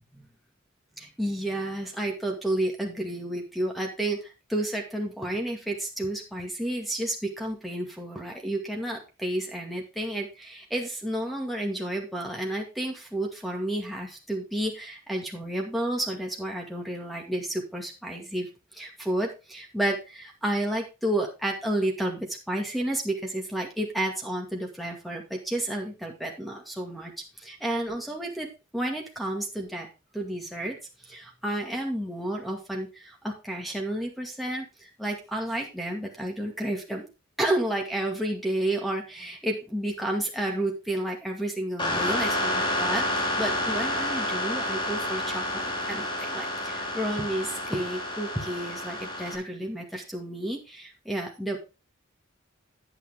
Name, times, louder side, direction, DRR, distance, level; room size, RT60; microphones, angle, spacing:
voice 1, 1.0-28.5 28.7-29.9 30.1-30.8 31.0-37.1 37.4-45.6 45.9-51.8, right 1 dB, ahead, 2 dB, 2.0 m, -31 dB
sound 1, 41.8-49.4, left 1 dB, 25° left, 2.6 m, -29 dB
9.1 x 8.8 x 3.6 m, 0.29 s
head